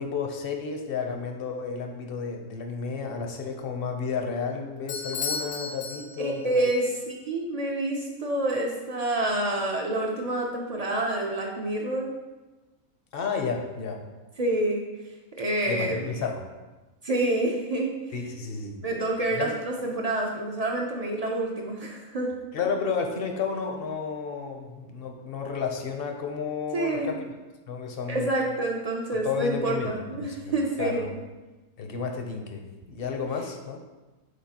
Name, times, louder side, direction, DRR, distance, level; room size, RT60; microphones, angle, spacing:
voice 1, 0.0-6.6 13.1-14.0 15.7-16.5 18.1-18.8 19.3-19.5 22.5-27.2 27.7-28.3 29.1-29.9 30.2-30.4 30.8-31.1 31.8-33.8, left 5 dB, 50° left, 3 dB, 0.7 m, -32 dB
Bell / Doorbell, 4.9-6.6, left 5 dB, 80° left, 1.4 m, -34 dB
voice 2, 6.2-12.1 14.4-14.8 15.4-16.1 17.0-17.9 18.8-22.5 26.7-27.1 28.1-31.1, right 1 dB, 50° right, 0 dB, 0.4 m, -28 dB
8.2 x 4.0 x 2.9 m, 1.2 s
omnidirectional pair, 1.5 m